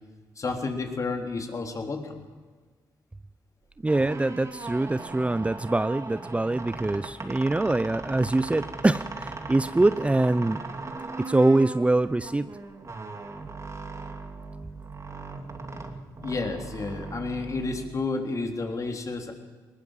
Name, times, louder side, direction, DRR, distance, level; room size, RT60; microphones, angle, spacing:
voice 1, 0.4-2.1 16.2-19.3, left 3 dB, 40° left, 4 dB, 3.6 m, -31 dB
sound 1, 3.7-18.3, right 3 dB, 40° right, 2.6 m, -38 dB
voice 2, 3.8-10.6 11.3-12.5, right 2 dB, 15° right, 14 dB, 0.6 m, -24 dB
20.5 x 19.5 x 7.5 m, 1.4 s
supercardioid pair, 65°, 8 cm